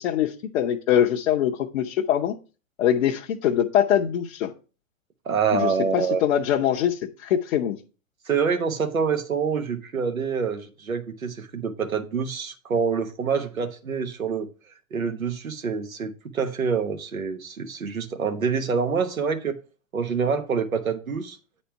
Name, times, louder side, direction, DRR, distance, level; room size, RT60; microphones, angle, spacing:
voice 1, 0.0-2.3 2.8-4.5 5.5-7.8, left 10 dB, 60° left, 0.8 m, -23 dB
voice 2, 5.2-6.2 8.3-14.5 14.9-19.6 19.9-21.4, right 5 dB, 90° right, 1.1 m, -26 dB
8.9 x 4.2 x 4.5 m
hypercardioid pair, 110°, 40 cm